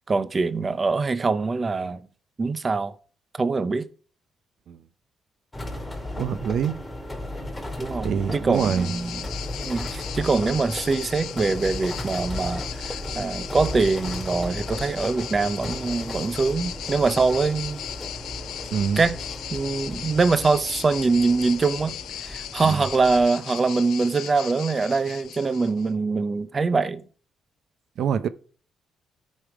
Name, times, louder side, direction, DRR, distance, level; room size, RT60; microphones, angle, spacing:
voice 1, 0.1-2.0 2.4-2.9 3.4-3.9 7.8-9.3 9.6-17.8 19.0-19.2 19.5-22.0 22.2-27.0, right 4 dB, 30° right, 0.7 m, -23 dB
sound 1, 5.5-23.2, left 1 dB, 15° left, 2.4 m, -35 dB
voice 2, 6.2-6.8 8.0-8.9 18.7-19.0 22.6-22.8 28.0-28.3, right 8 dB, 70° right, 0.6 m, -25 dB
sound 2, 8.5-25.9, left 11 dB, 80° left, 0.6 m, -37 dB
13.5 x 5.5 x 4.9 m
cardioid pair, 90°, 0 cm